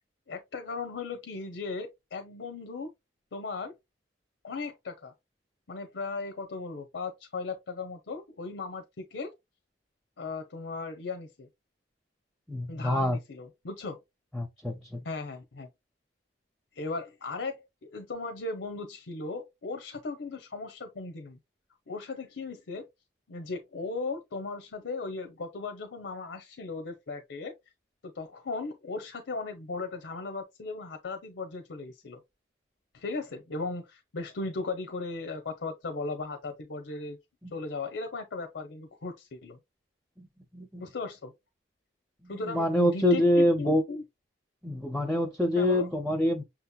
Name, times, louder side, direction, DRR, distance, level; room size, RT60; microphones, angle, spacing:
voice 1, 0.3-2.9 3.3-3.7 4.4-5.1 5.7-9.3 10.2-11.5 12.7-14.0 15.0-15.7 16.8-21.4 21.9-22.9 23.3-27.5 28.0-32.2 32.9-37.2 37.5-39.6 40.8-41.3 42.3-44.0 45.6-45.9, left 3 dB, 75° left, 0.6 m, -37 dB
voice 2, 12.5-13.2 14.3-15.0 40.5-40.8 42.5-43.8 44.6-46.4, left 1 dB, ahead, 0.5 m, -25 dB
6.0 x 2.8 x 2.2 m
head